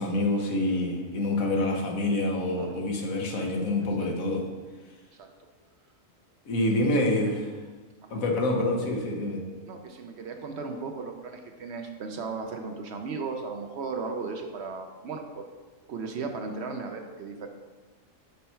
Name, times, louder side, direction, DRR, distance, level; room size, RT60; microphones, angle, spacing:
voice 1, 0.0-4.5 6.4-7.5 8.1-9.4, left 1 dB, 90° left, 1 dB, 1.4 m, -27 dB
voice 2, 6.6-7.3 8.0-8.2 9.6-15.5 15.9-17.5, right 4 dB, 60° right, 4 dB, 0.8 m, -36 dB
5.5 x 5.4 x 4.4 m, 1.3 s
omnidirectional pair, 1.4 m